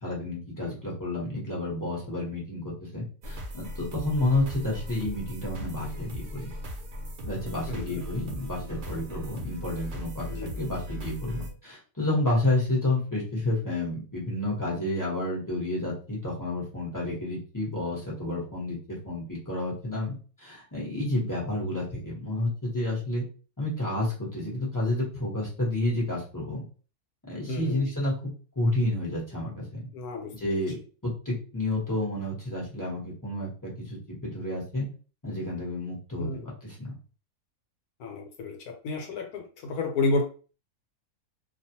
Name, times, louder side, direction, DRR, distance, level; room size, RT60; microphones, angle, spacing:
voice 1, 0.0-6.5 7.2-10.3 10.6-23.2 23.6-26.6 27.3-29.8 30.3-30.8 31.0-34.9 35.2-36.9, left 1 dB, 15° left, -6 dB, 0.7 m, -30 dB
sound 1, 3.2-11.5, equal, 80° right, 0.4 m, -38 dB
voice 2, 7.7-8.0 10.3-10.5 27.5-27.9 29.9-30.6 36.2-36.5 38.0-40.2, left 3 dB, 80° left, 2 dB, 1.1 m, -31 dB
2.5 x 2.3 x 2.7 m, 0.37 s
omnidirectional pair, 1.6 m